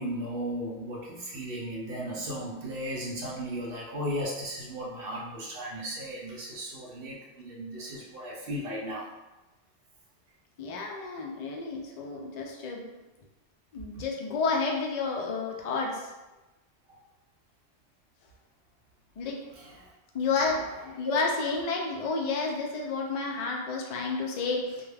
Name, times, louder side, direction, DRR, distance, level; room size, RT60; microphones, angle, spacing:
voice 1, 0.0-9.1 14.0-14.1 19.6-19.9, equal, 65° right, -4 dB, 0.7 m, -36 dB
voice 2, 10.6-12.9 13.7-16.1 19.2-19.4 20.1-24.9, left 4 dB, 65° left, 0 dB, 0.4 m, -30 dB
2.2 x 2.2 x 3.2 m, 1.1 s
omnidirectional pair, 1.2 m